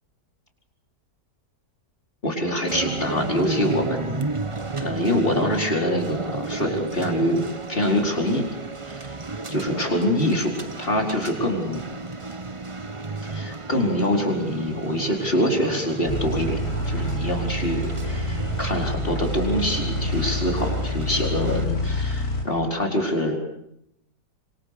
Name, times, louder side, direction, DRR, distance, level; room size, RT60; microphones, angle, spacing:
voice 1, 2.2-4.2 4.8-7.4 7.7-8.5 8.9-9.1 9.5-10.5 10.8-11.9 13.2-16.6 16.9-23.3, left 1 dB, 30° left, 2 dB, 5.0 m, -25 dB
sound 1, 2.7-21.6, right 3 dB, 20° right, 1.0 m, -33 dB
sound 2, 16.0-22.4, left 1 dB, 55° left, 5.3 m, -27 dB
27.0 x 25.0 x 6.9 m, 0.76 s
omnidirectional pair, 1.9 m